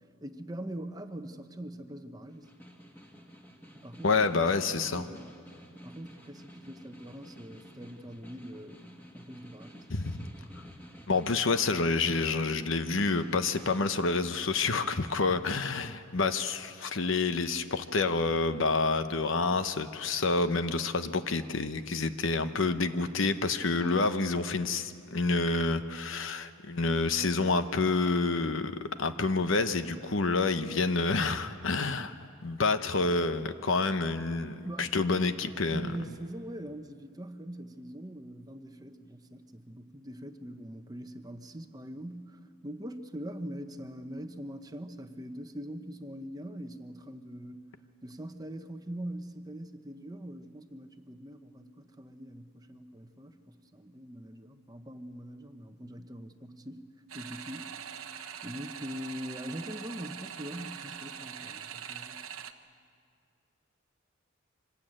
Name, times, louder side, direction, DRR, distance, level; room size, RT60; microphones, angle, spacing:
voice 1, 0.2-2.5 3.7-4.5 4.8-5.3 5.8-9.9 34.6-34.9 35.7-47.7 48.0-56.9 57.1-57.9 58.4-62.2, equal, 20° right, 7 dB, 0.9 m, -42 dB
Snare drum, 2.3-14.1, equal, 10° left, 2.1 m, -51 dB
voice 2, 4.0-5.0 9.9-10.2 11.1-32.1 32.4-35.9, left 3 dB, 65° left, 10 dB, 1.0 m, -28 dB
sound 1, 57.1-62.5, right 8 dB, 80° right, 1.1 m, -43 dB
25.5 x 19.5 x 8.9 m, 2.3 s
head